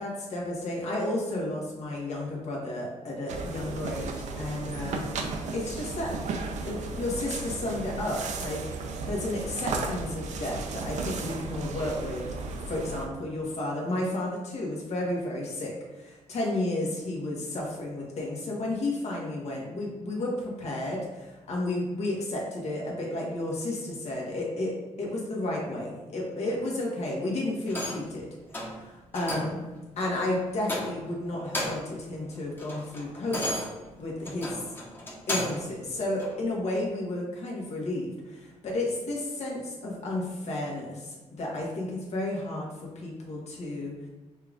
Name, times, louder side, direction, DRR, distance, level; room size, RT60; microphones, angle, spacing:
voice 1, 0.0-5.0 5.5-6.1 6.7-8.8 9.0-12.2 12.7-28.3 28.7-29.6 30.0-33.6 34.0-34.6 35.3-42.7 42.9-43.9, left 1 dB, 60° left, -2 dB, 1.3 m, -32 dB
sound 1, 3.3-13.1, right 3 dB, 70° right, 0.6 m, -35 dB
sound 2, 27.7-28.1 28.5-28.8 29.1-29.6 30.0-30.2 30.6-31.1 31.4-32.0 32.3-35.7 36.2-36.3, left 1 dB, 15° left, 1.0 m, -34 dB
5.6 x 2.5 x 3.4 m, 1.2 s
cardioid pair, 90°, 12 cm